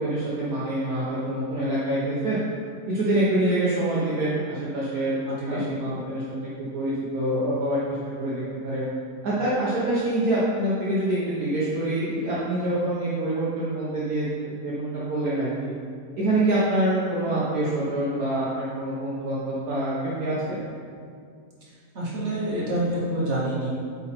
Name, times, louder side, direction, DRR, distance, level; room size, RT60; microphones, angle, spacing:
voice 1, 0.0-2.4 2.9-6.2 6.6-7.8 8.2-8.9 9.2-14.2 14.6-15.7 16.2-20.6, right 1 dB, 60° right, -8 dB, 1.6 m, -26 dB
voice 2, 5.3-5.6 21.6-23.7, right 1 dB, 40° right, -7 dB, 2.0 m, -28 dB
8.1 x 4.4 x 4.4 m, 2.2 s
omnidirectional pair, 1.9 m